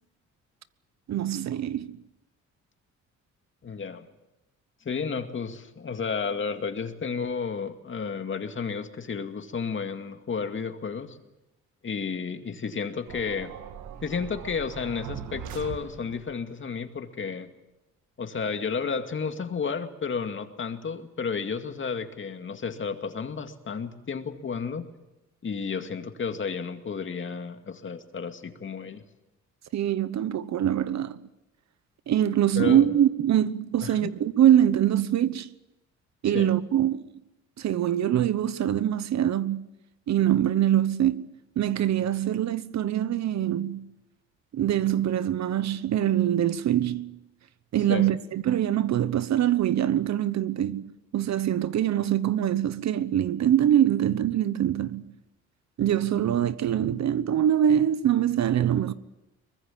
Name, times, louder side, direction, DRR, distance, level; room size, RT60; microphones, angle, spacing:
voice 1, 1.1-2.0 29.7-31.2 32.1-35.5 36.2-37.0 37.6-39.6 40.1-41.3 41.6-43.9 44.5-47.1 47.7-50.8 51.1-55.0 55.8-58.9, right 11 dB, 65° right, 1.1 m, -24 dB
voice 2, 3.6-4.1 4.8-11.2 11.8-13.5 14.0-17.5 18.2-24.9 25.4-29.0 32.6-33.0 33.8-34.1 36.3-36.6 47.9-48.1, left 5 dB, 40° left, 2.3 m, -32 dB
sound 1, 13.1-16.4, right 8 dB, 80° right, 1.9 m, -40 dB
23.5 x 21.0 x 7.4 m
cardioid pair, 90°, 30 cm